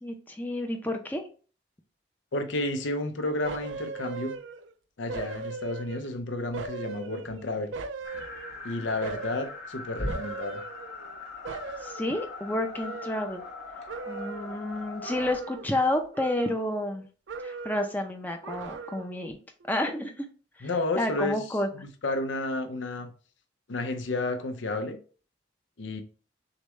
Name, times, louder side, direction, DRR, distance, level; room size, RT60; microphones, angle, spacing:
voice 1, 0.0-1.2 11.8-13.4 14.1-17.0 17.4-19.4 19.7-20.3 20.6-20.7 21.0-21.7, left 1 dB, 10° left, 0.5 m, -30 dB
voice 2, 2.3-4.4 5.0-7.8 8.6-10.6 20.6-21.4 21.7-23.1 23.7-25.0 25.8-26.0, left 2 dB, 85° left, 0.6 m, -31 dB
sound 1, 3.4-4.7 5.1-6.2 6.5-8.6 9.0-9.6 10.1-11.2 11.4-13.6 13.9-14.6 15.0-15.8 16.1-17.0 17.3-18.0 18.4-19.2 19.6-19.7, right 4 dB, 85° right, 0.5 m, -39 dB
sound 2, 7.0-16.1, equal, 35° left, 1.0 m, -46 dB
sound 3, 8.0-15.3, left 3 dB, 65° left, 1.3 m, -42 dB
6.5 x 2.2 x 3.1 m
head